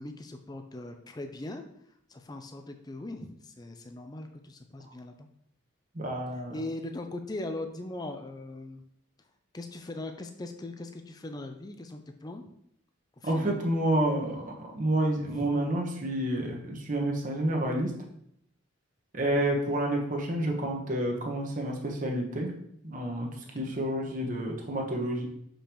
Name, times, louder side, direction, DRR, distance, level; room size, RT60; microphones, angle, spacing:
voice 1, 0.0-1.6 2.1-5.3 6.3-8.8 9.5-12.5 13.2-13.7 15.3-15.5 23.6-23.7, left 2 dB, 20° left, 6 dB, 0.4 m, -40 dB
voice 2, 5.9-6.5 13.2-17.9 19.1-22.5 22.8-23.3 23.5-25.3, right 1 dB, 40° right, 0 dB, 1.0 m, -29 dB
6.6 x 5.2 x 3.0 m, 0.72 s
head